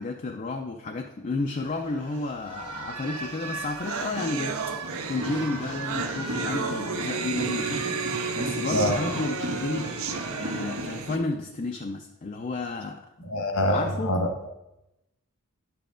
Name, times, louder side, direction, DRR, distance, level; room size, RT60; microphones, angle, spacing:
voice 1, 0.0-9.9 10.4-13.0 13.7-14.2, left 3 dB, 35° left, 3 dB, 0.4 m, -32 dB
sound 1, 1.6-11.2, right 2 dB, 85° right, 1.5 m, -35 dB
sound 2, 3.3-3.4 3.6-11.2, right 5 dB, 65° right, 0.5 m, -33 dB
voice 2, 13.2-14.5, left 1 dB, 75° left, 3 dB, 1.2 m, -25 dB
9.7 x 6.9 x 2.5 m, 0.92 s
head